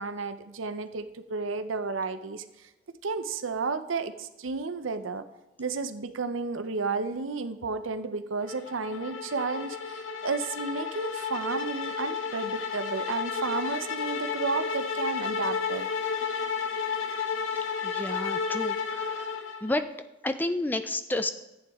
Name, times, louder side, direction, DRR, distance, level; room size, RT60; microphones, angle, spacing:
voice 1, 0.0-2.4 3.0-5.3 5.6-15.9, right 4 dB, 80° right, 11 dB, 0.7 m, -32 dB
sound 1, 8.5-19.8, left 6 dB, 80° left, 0.9 m, -32 dB
voice 2, 17.8-19.3 19.6-19.9 20.2-21.3, left 2 dB, 10° left, 9 dB, 0.4 m, -30 dB
14.0 x 8.6 x 3.6 m, 1.0 s
head